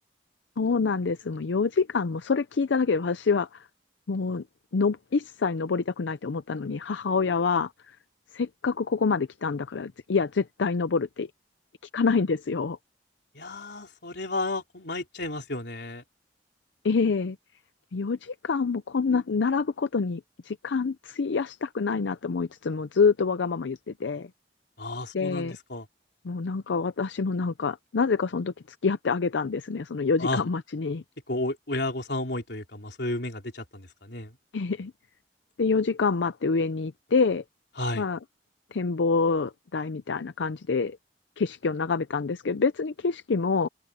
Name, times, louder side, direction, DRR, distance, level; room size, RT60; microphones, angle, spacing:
voice 1, 0.6-3.7 4.1-4.4 4.7-8.0 8.3-11.3 11.9-12.8 16.8-17.4 17.9-24.3 25.1-25.6 26.2-31.0 34.5-34.9 35.6-37.4 37.9-38.2 38.7-41.0 41.4-43.7, left 4 dB, 90° left, 0.6 m, -26 dB
voice 2, 13.3-16.0 24.8-25.8 30.2-30.4 31.3-34.3 37.8-38.0, left 2 dB, 65° left, 4.2 m, -32 dB
open air
head